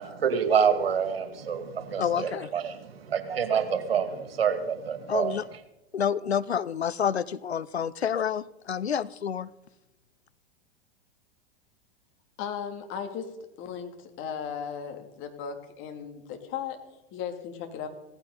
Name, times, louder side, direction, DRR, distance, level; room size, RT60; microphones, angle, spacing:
voice 1, 0.0-5.6, right 7 dB, 70° right, 9 dB, 2.2 m, -27 dB
voice 2, 2.0-2.5 5.1-5.4 5.9-8.4 8.7-9.5, left 8 dB, 85° left, 18 dB, 0.6 m, -28 dB
voice 3, 12.4-13.3 13.6-16.8 17.1-17.9, left 7 dB, 40° left, 5 dB, 2.8 m, -36 dB
17.0 x 15.5 x 4.0 m, 0.96 s
figure-of-eight pair, 95°, 31 cm